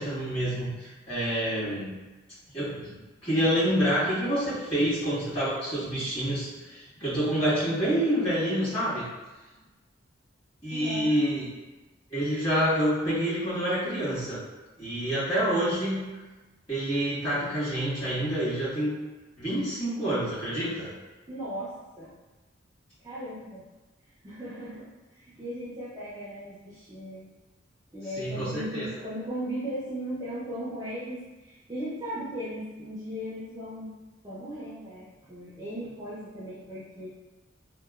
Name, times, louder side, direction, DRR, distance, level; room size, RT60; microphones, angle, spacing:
voice 1, 0.0-2.0 2.5-9.0 10.6-11.5 12.1-14.4 14.8-16.1 16.7-18.9 19.4-20.9 28.2-28.8, equal, 25° left, -13 dB, 1.4 m, -27 dB
voice 2, 10.7-11.1 21.3-22.1 23.0-23.6 24.2-27.3 27.9-33.9 34.2-37.1, equal, 20° right, -9 dB, 0.4 m, -37 dB
2.9 x 2.0 x 2.2 m, 1.2 s
head